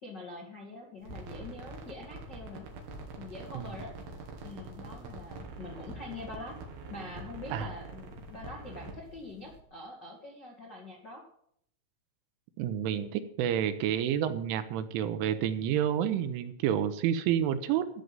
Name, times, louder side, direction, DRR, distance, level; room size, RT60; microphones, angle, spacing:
voice 1, 0.0-2.7 3.2-3.9 4.4-6.5 6.9-11.2, left 2 dB, 75° left, -1 dB, 0.9 m, -44 dB
sound 1, 1.0-9.6, right 3 dB, 55° right, 3.4 m, -45 dB
voice 2, 12.6-17.9, right 10 dB, 85° right, 10 dB, 3.1 m, -29 dB
14.0 x 5.3 x 9.4 m, 0.70 s
omnidirectional pair, 5.9 m